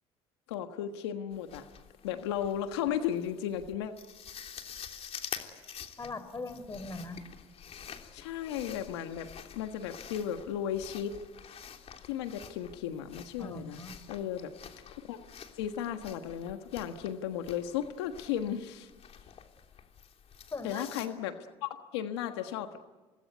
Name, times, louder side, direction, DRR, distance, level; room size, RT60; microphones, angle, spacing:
voice 1, 0.5-1.6 2.0-3.9 8.1-11.1 12.0-13.8 14.1-14.5 15.1-15.2 15.6-18.9 20.6-22.9, left 10 dB, 90° left, 7 dB, 1.5 m, -35 dB
sound 1, 1.3-21.1, left 8 dB, 50° left, 3.2 m, -48 dB
voice 2, 6.0-7.2 13.4-13.9 20.5-20.9, left 3 dB, 25° left, 12 dB, 4.0 m, -40 dB
27.0 x 20.0 x 9.6 m, 1.3 s
supercardioid pair, 75°, 13 cm